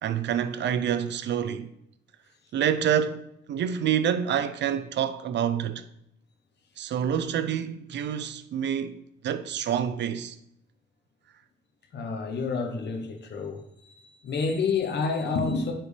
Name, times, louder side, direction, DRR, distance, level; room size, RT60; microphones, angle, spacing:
voice 1, 0.0-1.7 2.5-5.8 6.8-9.0 9.2-10.4, right 9 dB, 60° right, 0.6 m, -27 dB
voice 2, 11.9-15.7, left 4 dB, 60° left, 1.0 m, -29 dB
9.6 x 4.4 x 3.3 m
cardioid pair, 90°, 20 cm